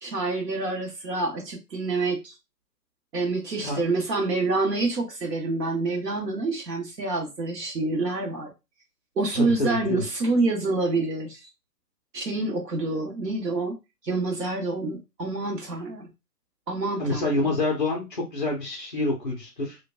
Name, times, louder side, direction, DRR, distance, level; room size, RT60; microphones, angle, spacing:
voice 1, 0.0-2.3 3.1-8.5 9.2-11.5 12.1-13.8 14.0-16.1 16.7-17.4, right 3 dB, 90° right, -1 dB, 0.9 m, -27 dB
voice 2, 9.4-10.0 17.0-19.8, left 2 dB, 35° left, -1 dB, 0.5 m, -27 dB
3.1 x 2.2 x 2.2 m, 0.24 s
figure-of-eight pair, 145°, 48 cm